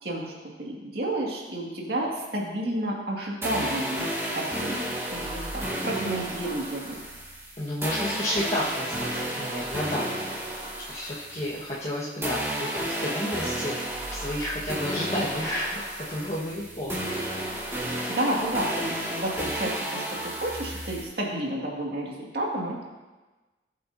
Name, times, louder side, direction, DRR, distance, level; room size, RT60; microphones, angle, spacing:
voice 1, 0.0-4.1 4.3-4.8 5.1-7.0 18.1-22.8, right 1 dB, 60° right, -3 dB, 2.2 m, -31 dB
sound 1, 3.4-11.9 12.2-21.0, right 1 dB, 15° right, 2.2 m, -32 dB
voice 2, 7.6-9.1 9.4-10.1 10.9-15.8 16.1-17.0, left 1 dB, 40° left, -8 dB, 1.5 m, -31 dB
18.5 x 7.8 x 2.8 m, 1.2 s
head